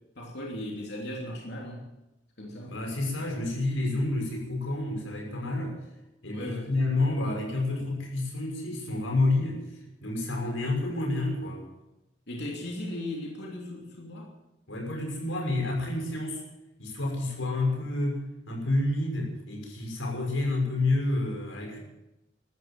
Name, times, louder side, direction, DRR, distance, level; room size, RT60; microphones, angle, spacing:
voice 1, 0.1-1.8 2.4-2.7 6.3-6.7 12.3-14.3, left 1 dB, 60° left, -1 dB, 3.1 m, -37 dB
voice 2, 2.7-5.8 6.2-11.6 14.7-16.4 16.8-21.8, left 2 dB, 85° left, 1 dB, 6.2 m, -29 dB
14.0 x 13.5 x 7.7 m, 0.92 s
head